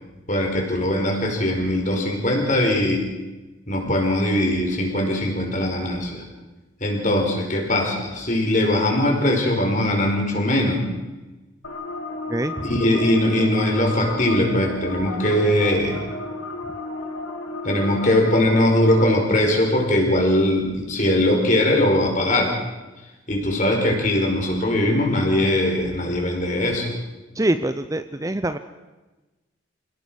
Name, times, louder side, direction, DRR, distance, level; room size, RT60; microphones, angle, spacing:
voice 1, 0.3-3.1 3.7-6.2 6.8-10.9 12.6-16.0 17.6-22.5 23.3-26.9, left 1 dB, 40° left, 1 dB, 5.3 m, -21 dB
sound 1, 11.6-19.0, left 2 dB, 85° left, 3.0 m, -33 dB
voice 2, 12.3-12.7 27.4-28.6, right 1 dB, 15° right, 11 dB, 0.6 m, -24 dB
27.0 x 18.0 x 6.5 m, 1.1 s
head